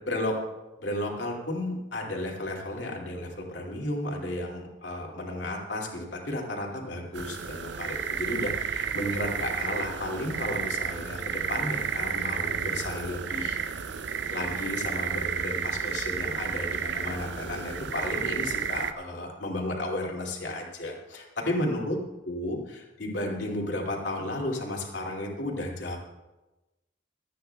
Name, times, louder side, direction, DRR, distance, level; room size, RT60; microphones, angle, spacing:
voice 1, 0.8-13.6 14.3-22.0 22.2-26.0, left 1 dB, 65° left, -1 dB, 2.5 m, -33 dB
sound 1, 7.1-18.9, right 7 dB, 65° right, 0.5 m, -32 dB
26.0 x 9.3 x 2.3 m, 1.1 s
head